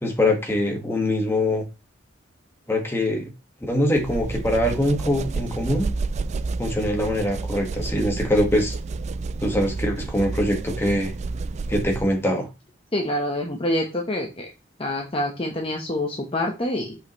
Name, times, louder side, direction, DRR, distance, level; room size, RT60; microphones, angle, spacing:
voice 1, 0.0-1.6 2.7-3.3 3.7-5.9 6.6-8.7 9.4-11.1 11.7-12.5, left 1 dB, 10° left, 1.7 m, -23 dB
sound 1, 4.0-12.2, right 3 dB, 35° right, 0.3 m, -30 dB
voice 2, 12.9-14.5 14.8-17.0, left 1 dB, 30° left, 1.1 m, -26 dB
8.0 x 5.5 x 3.1 m
head